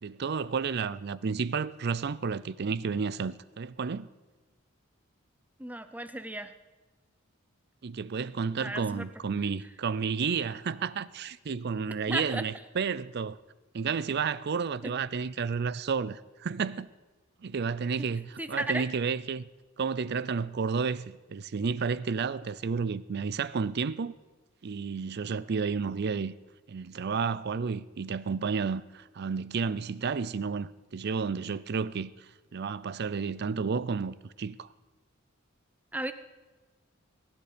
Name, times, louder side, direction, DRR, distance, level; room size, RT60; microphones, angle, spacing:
voice 1, 0.0-4.1 7.8-13.4 13.7-16.9 17.4-19.5 19.8-24.1 24.6-26.3 26.7-32.1 32.5-34.7, right 5 dB, 50° right, 0.4 m, -31 dB
voice 2, 5.6-6.5 8.6-9.1 12.1-12.4 14.8-14.9 18.0-18.1 18.4-18.8 35.9-36.1, right 1 dB, 5° right, 0.6 m, -34 dB
22.0 x 10.5 x 5.1 m
head